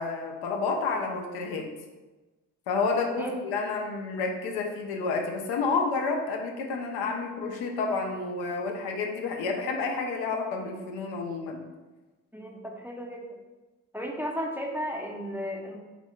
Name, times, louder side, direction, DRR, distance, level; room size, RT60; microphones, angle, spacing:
voice 1, 0.0-1.7 2.7-11.6, left 4 dB, 75° left, 2 dB, 0.5 m, -30 dB
voice 2, 12.3-13.4 13.9-15.8, equal, 5° right, 0 dB, 0.5 m, -34 dB
2.4 x 2.1 x 3.7 m, 1.2 s
hypercardioid pair, 45°, 37 cm